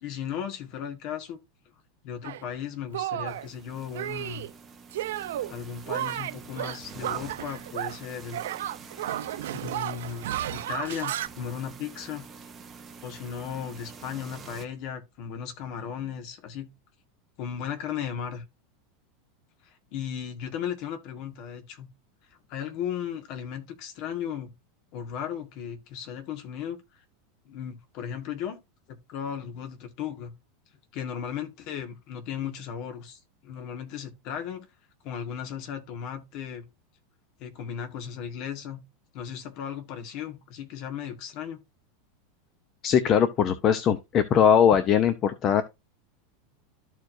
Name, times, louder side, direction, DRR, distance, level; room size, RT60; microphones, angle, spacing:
voice 1, 0.0-1.4 2.0-4.5 5.5-8.4 9.5-12.3 13.0-16.7 17.4-18.4 19.9-21.9 22.5-24.5 24.9-26.8 27.4-28.6 28.9-30.3 30.9-34.6 35.0-36.7 37.4-38.8 39.1-41.6, left 8 dB, 45° left, 1.7 m, -36 dB
Shatter, 2.2-2.4 2.9-3.5 3.9-4.5 4.9-5.5 5.9-8.1 8.3-11.3, right 13 dB, 90° right, 0.6 m, -33 dB
sound 1, 3.3-14.6, right 5 dB, 15° right, 0.9 m, -47 dB
voice 2, 42.8-45.6, left 8 dB, 25° left, 0.6 m, -21 dB
13.5 x 4.6 x 2.6 m
supercardioid pair, 165°, 0 cm